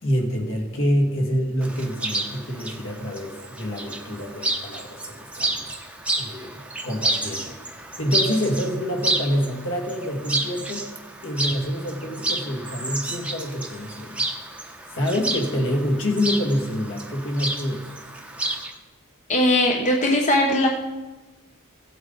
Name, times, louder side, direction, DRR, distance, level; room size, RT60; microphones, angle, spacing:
voice 1, 0.0-5.6 6.2-7.6 8.0-10.9 11.2-14.3 14.9-17.9, equal, 60° left, 1 dB, 2.0 m, -26 dB
Chirp tweet, 1.6-18.7, right 2 dB, 5° right, 1.0 m, -30 dB
voice 2, 19.3-20.7, left 1 dB, 35° left, 0 dB, 1.0 m, -19 dB
16.0 x 7.9 x 4.0 m, 1.2 s
head